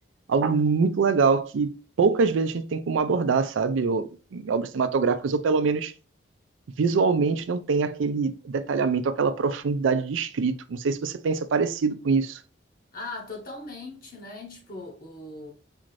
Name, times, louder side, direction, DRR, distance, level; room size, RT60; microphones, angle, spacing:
voice 1, 0.3-5.9 6.8-12.4, right 4 dB, 90° right, 0.4 m, -24 dB
voice 2, 12.9-15.5, left 2 dB, 50° left, 0.8 m, -39 dB
4.2 x 2.5 x 3.1 m
head